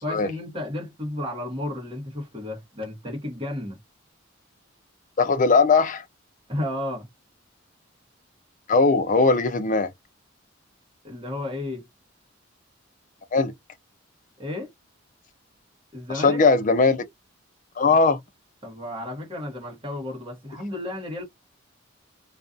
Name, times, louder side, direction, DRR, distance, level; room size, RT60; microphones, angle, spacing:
voice 1, 0.0-3.8 6.5-7.1 11.0-11.9 14.4-14.7 15.9-16.4 18.6-21.2, left 1 dB, 25° right, 0.9 m, -32 dB
voice 2, 5.2-6.0 8.7-9.9 13.3-13.5 16.1-17.0 17.8-18.2, left 4 dB, 40° left, 0.4 m, -19 dB
2.5 x 2.3 x 2.4 m
head